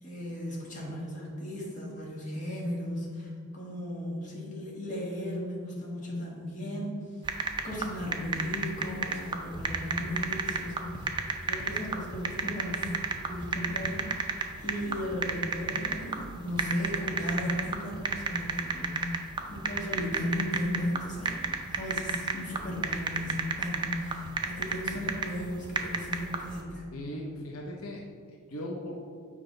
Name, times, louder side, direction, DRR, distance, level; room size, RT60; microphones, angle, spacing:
voice 1, 0.0-12.9 13.3-14.3 14.6-26.8, left 1 dB, 35° left, -4 dB, 1.7 m, -36 dB
sound 1, 7.3-26.6, right 4 dB, 20° right, 0.5 m, -32 dB
voice 2, 26.9-28.0 28.3-29.0, left 1 dB, 80° left, -1 dB, 0.8 m, -38 dB
7.5 x 4.9 x 3.9 m, 2.1 s
head